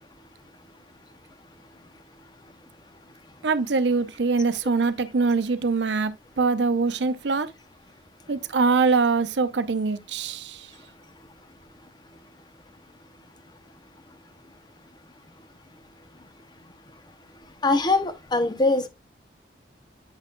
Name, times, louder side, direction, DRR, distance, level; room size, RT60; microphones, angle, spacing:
voice 1, 3.4-7.5 8.3-10.7, right 4 dB, 75° right, 0.6 m, -23 dB
voice 2, 17.6-18.9, left 2 dB, 25° left, 0.7 m, -22 dB
8.8 x 5.9 x 2.2 m
head